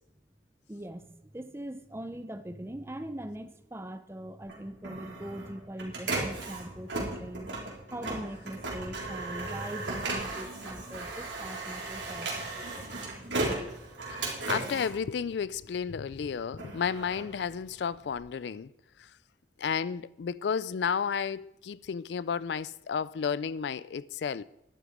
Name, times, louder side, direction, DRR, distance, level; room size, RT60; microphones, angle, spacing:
voice 1, 0.7-7.5 7.9-12.9, right 1 dB, 15° right, 0.6 m, -41 dB
Printer, 4.5-15.9 16.3-18.2, right 2 dB, 80° right, 3.8 m, -36 dB
voice 2, 14.1-18.7 19.0-19.1 19.6-24.4, left 6 dB, 70° left, 0.4 m, -32 dB
11.5 x 11.5 x 5.0 m
head